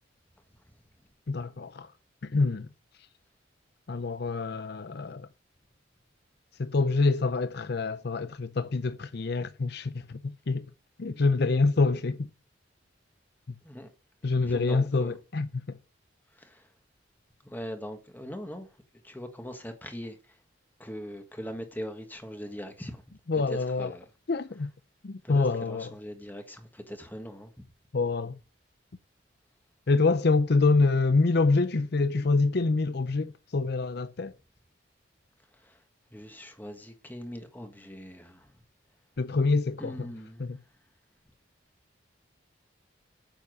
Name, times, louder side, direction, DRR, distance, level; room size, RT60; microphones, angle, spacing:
voice 1, 1.3-1.9 2.2-2.7 3.9-5.3 6.6-10.7 11.0-12.3 14.2-15.8 23.3-23.9 24.3-24.7 25.0-25.9 27.9-28.4 29.9-34.3 39.2-40.1 40.4-40.6, left 3 dB, 55° left, 0.6 m, -26 dB
voice 2, 14.4-15.2 16.3-16.7 17.4-18.7 19.0-20.4 20.8-23.0 23.5-24.0 25.2-27.5 35.5-35.8 36.1-38.5 39.8-40.5, equal, 10° left, 1.4 m, -41 dB
9.1 x 7.1 x 6.3 m
head